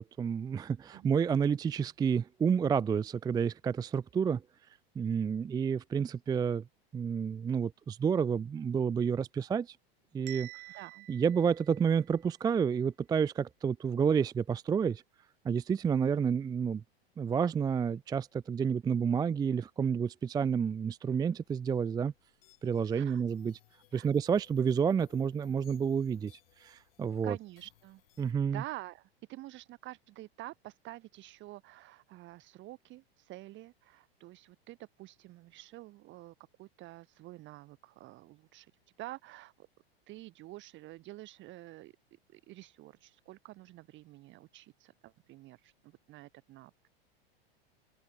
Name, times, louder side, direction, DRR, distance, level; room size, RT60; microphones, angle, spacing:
voice 1, 0.0-4.4 5.0-6.6 6.9-9.8 10.1-10.5 11.1-15.0 15.4-16.8 17.2-22.1 22.6-23.6 23.9-26.3 26.6-27.4 28.2-28.6, right 7 dB, 15° right, 0.5 m, -30 dB
Bell, 10.3-12.3, right 22 dB, 60° right, 1.3 m, -49 dB
voice 2, 10.7-11.1 22.9-23.2 23.9-24.1 27.2-28.0 28.5-38.7 39.0-39.7 40.1-41.9 42.3-46.9, right 18 dB, 40° right, 1.6 m, -48 dB
sound 1, 21.5-28.3, left 17 dB, 65° left, 4.9 m, -65 dB
open air
hypercardioid pair, 115°, 31 cm